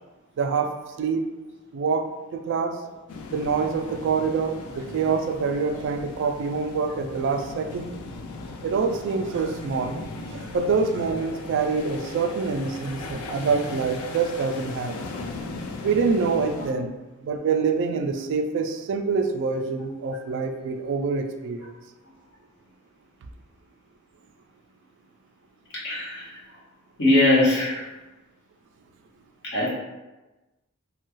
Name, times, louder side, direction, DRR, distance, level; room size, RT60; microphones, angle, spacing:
voice 1, 0.4-0.7 1.0-1.2 1.7-2.8 3.3-7.9 8.6-10.0 10.3-14.9 15.8-17.0 17.2-21.7, right 5 dB, 60° right, 6 dB, 0.3 m, -26 dB
sound 1, 3.1-16.7, left 3 dB, 85° left, 0.4 m, -38 dB
voice 2, 25.7-26.4 27.0-27.8 29.4-29.7, left 2 dB, 60° left, -7 dB, 1.1 m, -21 dB
3.0 x 2.3 x 3.0 m, 1.1 s
head